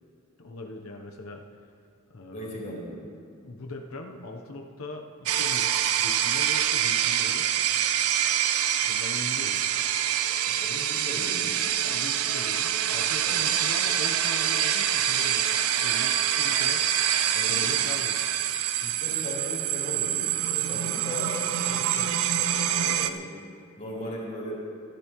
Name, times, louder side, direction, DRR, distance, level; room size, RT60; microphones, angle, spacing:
voice 1, 0.4-1.4 2.1-2.7 3.4-7.5 8.8-9.8 11.8-15.4 15.8-16.8 17.5-18.3, left 2 dB, 70° left, 2 dB, 0.9 m, -40 dB
voice 2, 2.3-3.0 10.3-11.7 13.2-13.4 17.3-17.7 18.8-23.4 23.8-24.6, equal, 35° left, -5 dB, 3.6 m, -38 dB
sound 1, 5.3-23.1, right 10 dB, 85° right, 0.6 m, -26 dB
25.0 x 10.0 x 3.1 m, 2.5 s
head